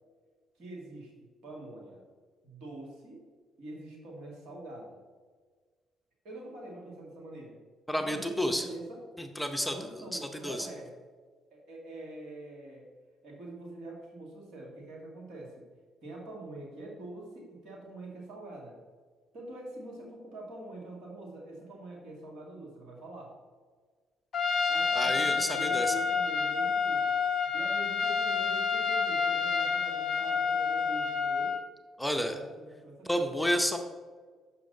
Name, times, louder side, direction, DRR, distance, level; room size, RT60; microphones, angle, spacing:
voice 1, 0.6-2.0 2.4-3.3 3.6-5.0 6.2-7.6 8.0-9.0 9.6-10.9 11.5-12.9 13.2-15.7 16.0-18.8 19.3-23.3 24.7-31.6 32.2-32.4 32.8-33.4, right 2 dB, 65° right, -1 dB, 1.9 m, -45 dB
voice 2, 7.9-8.7 9.2-10.7 24.9-26.0 32.0-32.4 33.0-33.8, equal, 5° left, 4 dB, 0.8 m, -31 dB
Trumpet, 24.3-31.7, left 5 dB, 50° left, 0.5 m, -29 dB
6.4 x 5.7 x 3.9 m, 1.5 s
hypercardioid pair, 50°, 0 cm